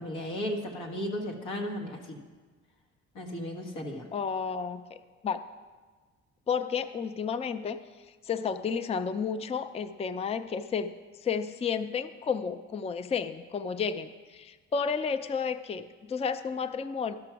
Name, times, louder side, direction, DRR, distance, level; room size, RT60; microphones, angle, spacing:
voice 1, 0.0-2.2 3.1-4.1, equal, 90° left, 2 dB, 1.6 m, -35 dB
voice 2, 4.1-5.4 6.5-7.8 8.2-10.9 11.2-17.2, left 6 dB, 20° left, 11 dB, 0.4 m, -32 dB
12.5 x 6.0 x 5.9 m, 1.4 s
cardioid pair, 90°, 30 cm